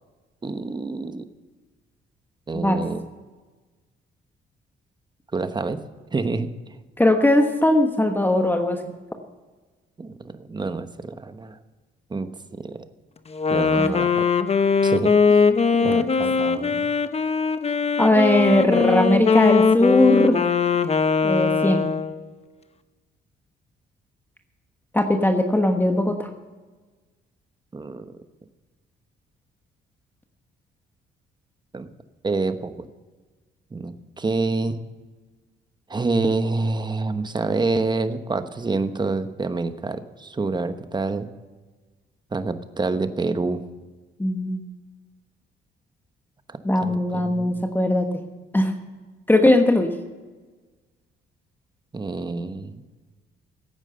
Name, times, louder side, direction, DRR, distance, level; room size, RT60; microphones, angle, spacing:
voice 1, 0.4-1.3 2.5-3.0 5.3-5.8 6.1-6.5 10.0-11.6 12.1-12.8 13.5-14.2 14.8-15.5 15.8-16.9 27.7-28.1 31.7-31.9 32.2-32.9 33.7-34.8 35.9-41.3 42.3-43.6 46.5-47.6 51.9-52.8, right 3 dB, 20° right, 10 dB, 1.1 m, -27 dB
voice 2, 7.0-8.9 13.8-13.9 15.7-16.0 18.0-20.5 21.2-21.9 24.9-26.3 44.2-44.6 46.6-48.2 48.5-48.7 49.3-49.9, left 1 dB, 10° left, 5 dB, 1.2 m, -19 dB
Wind instrument woodwind instrument, 13.3-22.3, left 5 dB, 30° left, 0.9 m, -20 dB
16.0 x 9.1 x 6.8 m, 1.3 s
cardioid pair, 90°, 20 cm